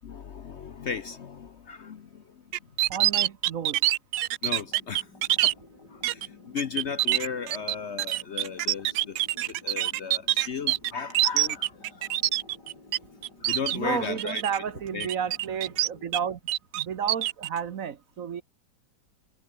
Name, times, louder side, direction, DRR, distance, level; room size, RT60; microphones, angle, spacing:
voice 1, 0.0-2.4 4.4-5.1 5.4-5.5 5.9-9.2 9.5-11.8 13.4-14.4 14.9-15.1, left 6 dB, 50° left, 0.9 m, -35 dB
sound 1, 2.5-5.5 6.0-6.3 6.6-13.0 13.2-13.8 14.2-14.6 15.0-16.2 16.5-17.5, right 14 dB, 75° right, 1.2 m, -25 dB
voice 2, 2.9-3.9 13.7-16.4 16.7-18.4, right 7 dB, 55° right, 1.3 m, -32 dB
sound 2, 4.5-16.1, left 2 dB, 85° left, 6.3 m, -53 dB
omnidirectional pair, 1.8 m